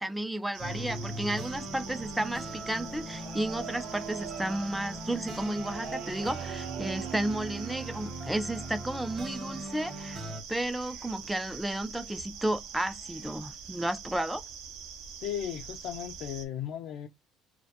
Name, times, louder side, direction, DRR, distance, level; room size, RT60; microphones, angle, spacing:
voice 1, 0.0-10.2 10.5-14.4, right 1 dB, 5° right, 0.3 m, -33 dB
sound 1, 0.5-16.5, right 7 dB, 80° right, 0.4 m, -44 dB
sound 2, 0.6-10.4, right 2 dB, 35° right, 0.8 m, -40 dB
voice 2, 15.2-17.1, left 10 dB, 70° left, 0.3 m, -36 dB
2.2 x 2.1 x 2.8 m
cardioid pair, 100°, 0 cm